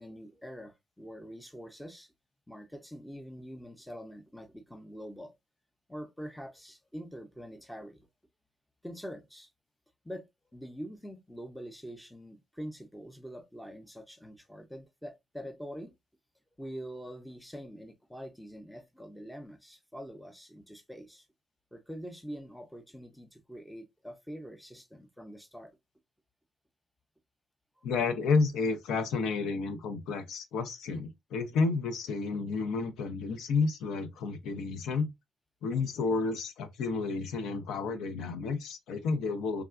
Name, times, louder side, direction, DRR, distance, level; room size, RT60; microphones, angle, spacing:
voice 1, 0.0-2.1 2.5-5.3 5.9-8.1 8.8-9.5 10.0-15.9 16.6-21.3 21.7-25.7, equal, 5° left, 0.5 m, -45 dB
voice 2, 27.8-35.1 35.6-39.6, left 4 dB, 85° left, 0.5 m, -31 dB
3.4 x 2.2 x 2.4 m
cardioid pair, 120°, 0 cm